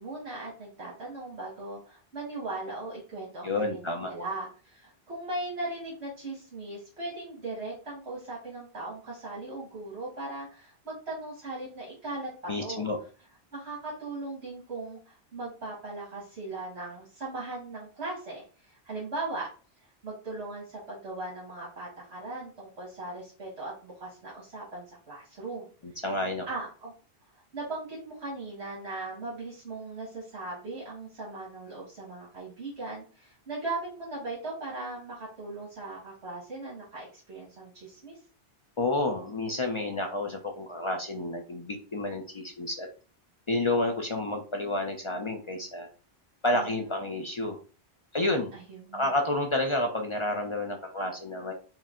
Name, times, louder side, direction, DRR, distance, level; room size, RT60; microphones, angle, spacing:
voice 1, 0.0-12.9 13.5-19.5 19.8-25.7 26.5-26.9 27.5-38.2 46.5-46.9 48.5-49.1, right 2 dB, 75° right, -5 dB, 1.8 m, -38 dB
voice 2, 3.4-4.1 12.5-13.0 25.8-26.5 38.8-42.9 43.5-45.9 46.4-47.6 48.1-48.5 48.9-51.5, left 2 dB, 40° left, 3 dB, 0.5 m, -30 dB
4.4 x 2.1 x 3.6 m, 0.37 s
omnidirectional pair, 1.1 m